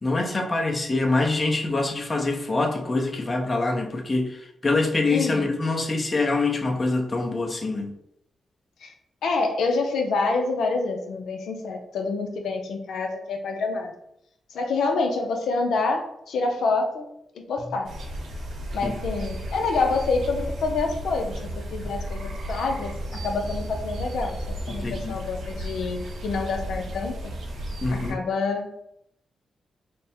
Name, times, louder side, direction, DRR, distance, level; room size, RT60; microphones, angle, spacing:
voice 1, 0.0-7.9 18.8-19.0 24.7-25.2 27.8-28.2, left 3 dB, 35° left, 2 dB, 0.7 m, -25 dB
voice 2, 5.1-5.5 8.8-8.9 9.2-13.9 14.5-17.1 17.5-17.9 18.7-21.4 21.7-24.4 24.7-27.3 28.1-28.8, left 3 dB, 85° left, 3 dB, 0.5 m, -27 dB
sound 1, 17.8-28.1, equal, 75° right, 0.8 m, -34 dB
3.4 x 2.1 x 4.2 m, 0.75 s
cardioid pair, 85°, 0 cm